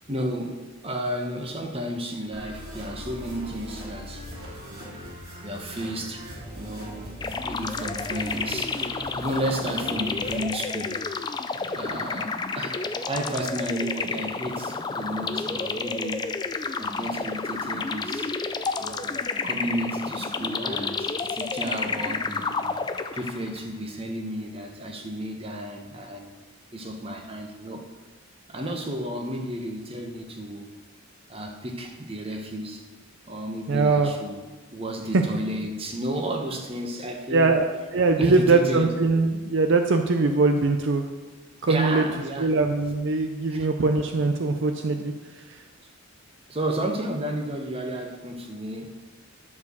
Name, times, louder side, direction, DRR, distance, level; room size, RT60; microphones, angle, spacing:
voice 1, 0.1-4.3 4.7-4.9 5.4-6.2 6.5-11.0 11.6-16.4 16.8-18.3 18.8-19.1 19.4-26.3 26.7-27.9 28.5-30.7 31.3-32.8 33.3-34.4 34.7-37.6 38.2-39.0 41.7-42.5 43.5-43.7 46.5-48.9, right 1 dB, 25° right, 3 dB, 1.0 m, -32 dB
sound 1, 2.3-10.3, equal, 80° right, 3.1 m, -40 dB
sound 2, 7.2-23.6, left 4 dB, 20° left, 0.3 m, -30 dB
voice 2, 33.7-34.1 35.1-35.2 37.3-37.7 37.9-41.0 41.6-42.0 42.4-45.1, right 3 dB, 55° right, 5 dB, 0.5 m, -21 dB
11.0 x 4.7 x 6.8 m, 1.3 s
head